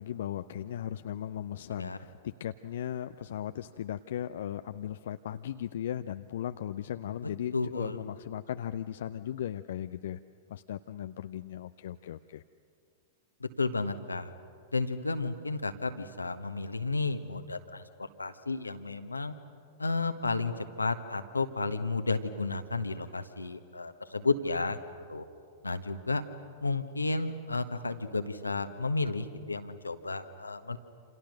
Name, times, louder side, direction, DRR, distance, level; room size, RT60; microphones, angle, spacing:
voice 1, 0.0-10.2 10.5-12.4, left 10 dB, 60° left, 10 dB, 0.6 m, -37 dB
voice 2, 7.5-8.0 13.4-14.3 14.7-19.3 19.8-24.8 25.1-25.2 25.6-26.2 26.6-30.8, left 3 dB, 85° left, 8 dB, 1.4 m, -32 dB
28.0 x 27.5 x 6.6 m, 2.3 s
figure-of-eight pair, 100°, 0 cm